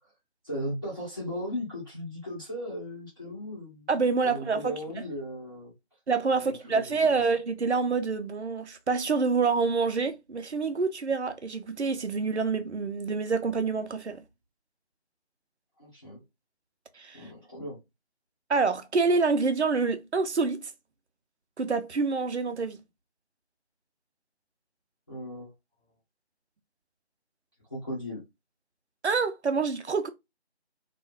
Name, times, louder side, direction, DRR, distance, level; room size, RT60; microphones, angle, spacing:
voice 1, 0.4-3.9 4.2-5.7 6.3-6.9 15.8-16.2 17.1-17.8 25.1-25.5 27.7-28.2, equal, 20° left, 0.8 m, -37 dB
voice 2, 3.9-4.8 6.1-14.2 16.9-17.3 18.5-20.7 21.6-22.8 29.0-30.1, right 4 dB, 85° right, 0.6 m, -27 dB
2.5 x 2.3 x 3.1 m
figure-of-eight pair, 165°, 33 cm